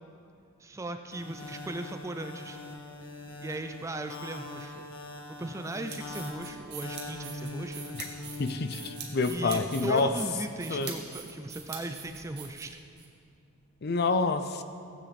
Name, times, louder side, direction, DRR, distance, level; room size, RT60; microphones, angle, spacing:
voice 1, 0.6-2.6 3.4-4.8 5.3-8.0 9.3-12.8, right 2 dB, 15° right, 7 dB, 0.3 m, -38 dB
sound 1, 1.1-9.3, left 2 dB, 65° left, 1.4 m, -43 dB
sound 2, 5.6-13.1, right 6 dB, 50° right, 1.7 m, -43 dB
voice 2, 8.4-10.1 10.7-10.9 13.8-14.6, left 3 dB, 45° left, 9 dB, 0.5 m, -27 dB
16.0 x 8.4 x 4.1 m, 2.5 s
head